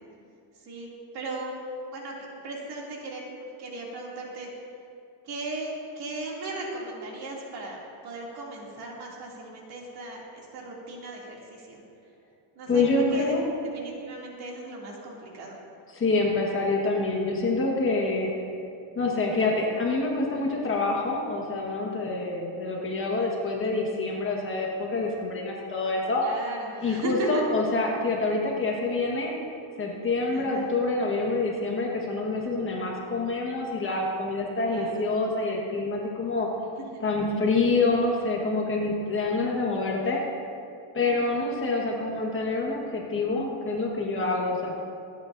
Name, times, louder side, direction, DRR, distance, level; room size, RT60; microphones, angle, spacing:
voice 1, 0.6-1.6 1.9-4.5 5.2-11.8 12.6-13.3 13.7-15.5 19.3-19.7 26.2-27.3 30.3-30.7 34.7-35.0 36.8-37.1 41.2-41.6, right 2 dB, 50° right, -3 dB, 2.6 m, -37 dB
voice 2, 12.7-13.4 15.9-18.3 18.9-26.2 26.8-29.3 29.8-36.5 37.0-40.2 40.9-44.8, left 3 dB, 25° left, -2 dB, 1.4 m, -26 dB
26.0 x 9.2 x 2.6 m, 2.5 s
cardioid pair, 170°, 50 cm